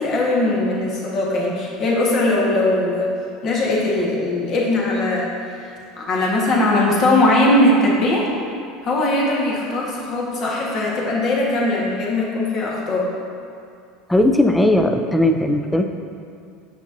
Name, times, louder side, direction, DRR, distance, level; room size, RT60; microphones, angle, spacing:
voice 1, 0.0-3.1 3.4-8.3 8.8-13.1, left 1 dB, 50° left, -4 dB, 1.5 m, -20 dB
voice 2, 14.1-15.9, left 1 dB, 10° left, 5 dB, 0.5 m, -17 dB
7.1 x 5.8 x 2.7 m, 2.4 s
hypercardioid pair, 80°, 0 cm